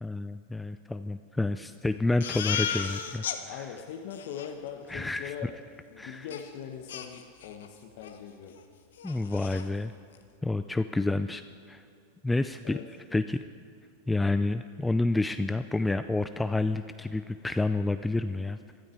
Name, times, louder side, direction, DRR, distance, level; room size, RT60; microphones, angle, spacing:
voice 1, 0.0-3.2 4.9-5.3 6.0-6.3 9.0-9.9 10.4-11.4 11.7-11.8 12.2-12.8 13.1-13.4 14.1-18.6, left 2 dB, 5° left, 10 dB, 0.4 m, -29 dB
Crying sobbing, 2.2-3.4 3.8-3.9 4.1-4.5 6.3-6.4 6.9-7.7 8.0-8.2 8.5-8.6 9.0-9.7, left 8 dB, 85° left, 1.1 m, -34 dB
voice 2, 3.4-5.5 5.9-8.6 12.6-12.8, left 8 dB, 60° left, 2 dB, 1.0 m, -41 dB
16.0 x 12.5 x 4.5 m, 2.4 s
hypercardioid pair, 120°, 0 cm